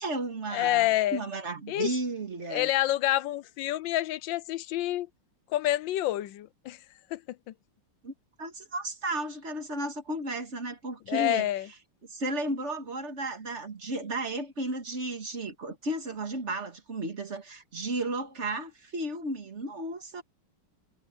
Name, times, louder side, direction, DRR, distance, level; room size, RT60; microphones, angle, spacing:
voice 1, 0.0-2.7 8.0-8.1 8.4-11.5 12.1-20.2, right 2 dB, 35° right, 2.5 m, -34 dB
voice 2, 0.5-1.2 1.7-1.9 2.5-5.1 5.5-6.8 7.1-7.2 11.1-11.7, left 15 dB, 70° left, 1.3 m, -28 dB
omnidirectional pair, 2.3 m